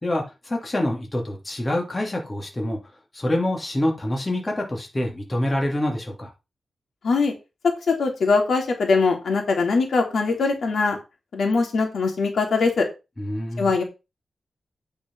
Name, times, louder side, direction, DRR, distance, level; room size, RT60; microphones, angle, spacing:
voice 1, 0.0-2.8 3.1-6.3 13.2-13.7, left 1 dB, 20° left, 2.8 m, -26 dB
voice 2, 7.6-11.0 11.3-12.9 13.6-13.8, left 4 dB, 70° left, 3.1 m, -21 dB
9.5 x 5.1 x 5.4 m
wide cardioid pair, 110°, 0 cm